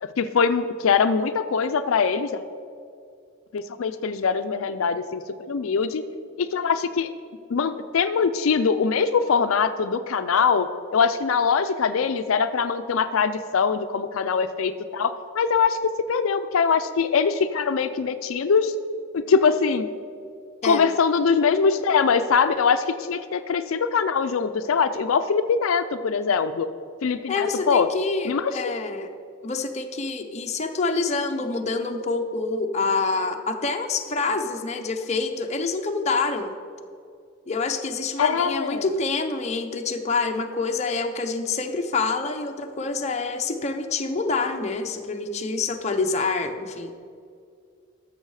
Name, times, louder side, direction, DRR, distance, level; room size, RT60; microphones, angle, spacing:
voice 1, 0.0-2.5 3.5-6.0 6.4-7.1 7.5-18.7 19.1-19.9 20.6-26.7 27.0-27.9 28.2-28.7 38.2-38.9, left 5 dB, 80° left, 10 dB, 0.4 m, -22 dB
voice 2, 27.3-29.1 29.4-36.5 37.5-46.9, left 3 dB, 35° left, 4 dB, 0.6 m, -27 dB
14.0 x 6.4 x 4.8 m, 2.4 s
head